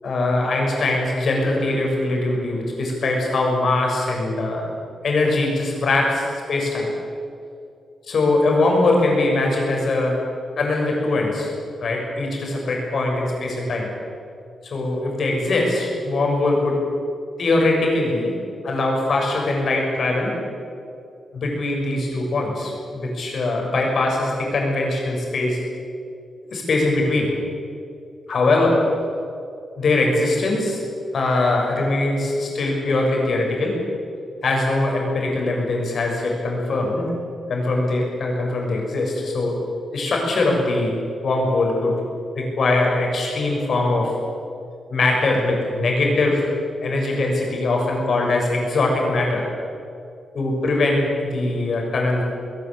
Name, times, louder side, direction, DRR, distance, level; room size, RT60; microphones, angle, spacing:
voice 1, 0.0-4.6 5.0-6.9 8.0-10.2 10.6-11.5 11.8-13.9 14.6-16.8 17.4-18.3 18.6-20.3 21.3-25.6 26.5-27.3 28.3-28.8 29.8-30.8 31.1-33.8 34.4-37.1 37.5-39.5 39.9-41.0 41.2-41.9 42.3-44.1 44.9-46.5 46.8-49.5 50.3-52.2, left 2 dB, 50° left, 0 dB, 6.8 m, -21 dB
20.5 x 19.0 x 9.2 m, 2.5 s
wide cardioid pair, 165°, 0 cm